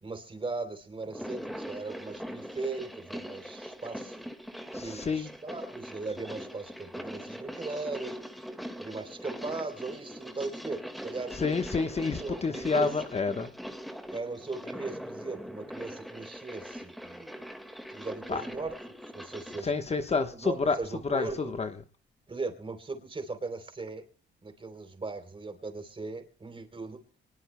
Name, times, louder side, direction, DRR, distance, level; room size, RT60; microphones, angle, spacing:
voice 1, 0.0-4.2 4.7-8.2 8.8-11.3 12.0-12.9 14.1-17.5 17.9-19.7 20.3-21.6 22.3-24.0 24.4-27.0, right 3 dB, 25° right, 7 dB, 3.2 m, -38 dB
sound 1, 1.0-19.7, equal, ahead, 1.7 m, -41 dB
voice 2, 4.7-5.3 11.4-13.5 18.3-18.4 19.6-20.8 21.1-21.7, left 4 dB, 30° left, 7 dB, 1.1 m, -29 dB
24.0 x 20.0 x 2.2 m, 0.40 s
cardioid pair, 90°, 20 cm